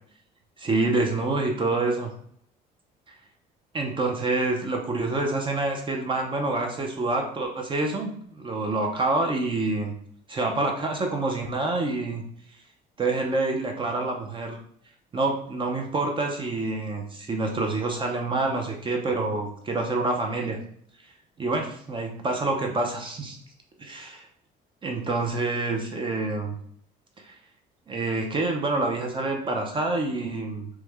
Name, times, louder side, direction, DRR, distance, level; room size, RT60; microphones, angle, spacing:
voice 1, 0.6-2.1 3.7-9.9 10.3-12.3 13.0-14.6 15.1-20.6 21.4-23.4 23.8-24.3 24.8-26.5 27.2-27.3 27.9-30.7, right 2 dB, 30° right, 2 dB, 0.5 m, -27 dB
3.1 x 2.1 x 3.3 m, 0.64 s
cardioid pair, 110°, 17 cm